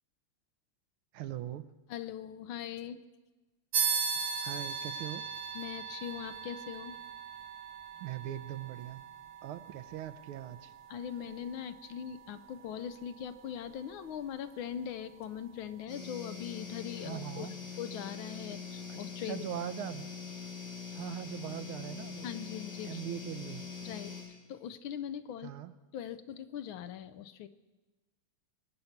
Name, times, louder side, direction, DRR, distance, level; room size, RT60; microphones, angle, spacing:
voice 1, 1.1-1.7 4.4-5.2 8.0-9.0 9.4-10.7 17.0-17.5 18.9-19.0 19.3-20.1 20.9-22.3 22.8-23.6 25.4-25.7, right 12 dB, 80° right, 12 dB, 1.6 m, -40 dB
voice 2, 1.9-3.0 5.5-6.9 10.9-17.5 17.8-19.4 22.2-23.0 23.8-24.1 24.5-25.5 25.9-27.5, left 9 dB, 75° left, 13 dB, 1.4 m, -41 dB
sound 1, 3.7-13.7, right 6 dB, 60° right, 2.0 m, -38 dB
sound 2, 15.9-24.2, left 6 dB, 50° left, 7.3 m, -43 dB
23.5 x 9.4 x 5.8 m, 1.2 s
omnidirectional pair, 2.4 m